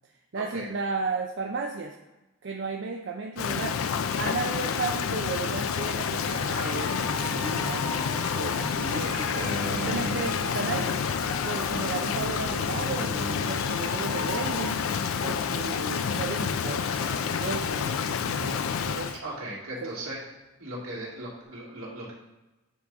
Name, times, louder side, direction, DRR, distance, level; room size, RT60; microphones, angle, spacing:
voice 1, 0.3-1.9 2.4-3.9 4.1-7.9 8.4-10.9 11.4-13.2 13.4-14.9 15.2-19.1 19.8-19.9, right 4 dB, 55° right, 2 dB, 0.5 m, -34 dB
Rain, 3.4-19.2, left 6 dB, 75° left, 0.4 m, -29 dB
Cheering, 6.0-17.3 17.6-18.0 18.4-18.5 18.7-19.5, left 2 dB, 55° left, 1.6 m, -40 dB
sound 1, 9.3-11.3 12.3-13.8, left 1 dB, 10° right, 1.0 m, -37 dB
voice 2, 19.2-20.2 20.6-22.1, right 1 dB, 75° right, -5 dB, 2.3 m, -37 dB
9.2 x 3.5 x 4.0 m, 1.0 s
head